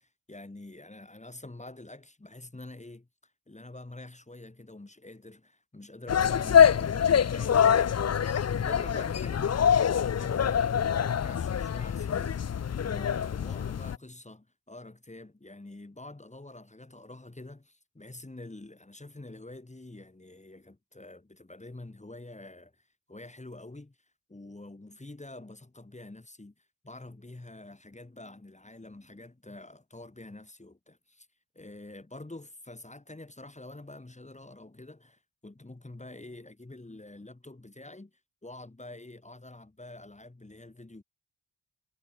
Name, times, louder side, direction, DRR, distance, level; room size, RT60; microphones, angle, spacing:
voice 1, 0.0-24.0 24.3-31.3 31.6-38.1 38.4-41.0, left 2 dB, 20° left, 3.6 m, -47 dB
sound 1, 6.1-14.0, left 8 dB, 40° left, 0.7 m, -25 dB
cardioid pair, 85°, 39 cm